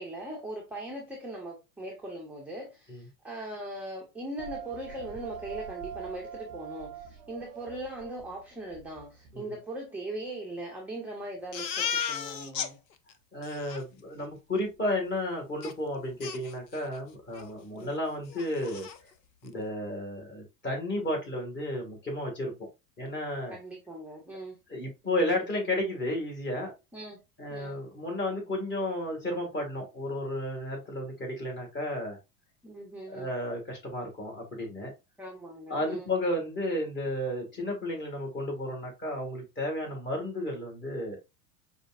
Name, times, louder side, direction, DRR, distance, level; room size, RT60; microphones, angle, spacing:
voice 1, 0.0-12.8 17.7-17.9 23.5-24.6 26.9-27.2 27.5-27.8 32.6-33.3 35.2-36.1, right 1 dB, 5° right, 0.6 m, -40 dB
sound 1, 4.4-9.4, right 9 dB, 45° right, 0.5 m, -43 dB
Crying sobbing, 11.5-12.7 13.1-13.2 13.4-13.8 15.6-15.7 16.2-17.0 17.3-17.5 17.9-18.0 18.3-19.0, left 7 dB, 90° left, 0.5 m, -35 dB
voice 2, 13.3-18.9 19.4-22.7 23.0-23.5 24.7-26.7 27.4-32.2 33.1-34.9 35.7-41.2, left 1 dB, 20° left, 1.8 m, -33 dB
4.9 x 2.6 x 2.5 m
figure-of-eight pair, 85°, 49 cm